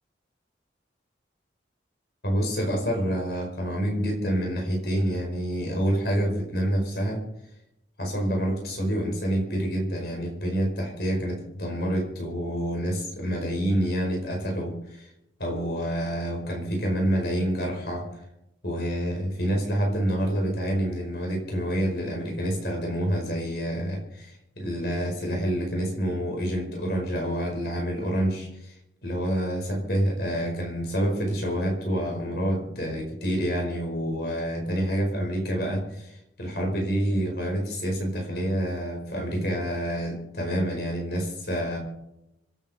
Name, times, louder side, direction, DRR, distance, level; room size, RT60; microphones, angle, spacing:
voice 1, 2.2-7.2 8.0-15.1 15.4-18.1 18.6-28.8 29.0-41.8, equal, 60° left, 1 dB, 5.1 m, -27 dB
27.0 x 10.0 x 4.5 m, 0.85 s
head